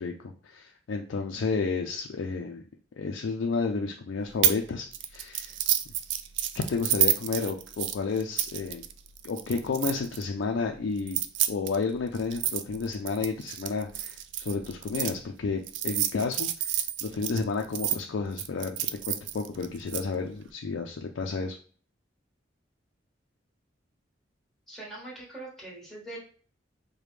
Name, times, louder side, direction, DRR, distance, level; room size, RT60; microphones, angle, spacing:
voice 1, 0.0-2.6 3.0-5.5 6.5-8.8 9.2-11.2 11.5-18.8 19.0-21.6, left 4 dB, 75° left, 2 dB, 0.4 m, -31 dB
sound 1, 4.4-4.6 4.9-10.2 11.0-15.1 15.7-18.0 18.4-20.0, right 11 dB, 70° right, 0.3 m, -29 dB
voice 2, 24.7-26.2, right 2 dB, ahead, -5 dB, 1.5 m, -42 dB
5.0 x 2.2 x 3.2 m, 0.42 s
head